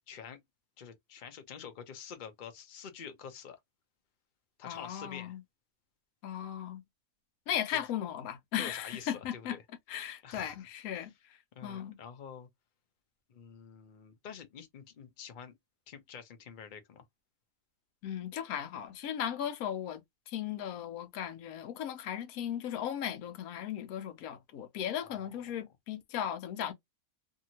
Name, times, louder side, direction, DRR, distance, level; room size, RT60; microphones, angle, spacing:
voice 1, 0.1-0.4 0.8-3.6 4.6-5.4 7.7-7.8 8.5-9.6 10.2-10.6 11.5-12.5 13.3-15.6 15.9-17.0 25.0-25.3, left 7 dB, 50° left, 0.6 m, -47 dB
voice 2, 4.6-5.4 6.2-6.8 7.5-9.6 9.9-11.1 11.6-11.9 18.0-26.7, left 10 dB, 70° left, 1.1 m, -37 dB
2.7 x 2.6 x 2.8 m
omnidirectional pair, 1.6 m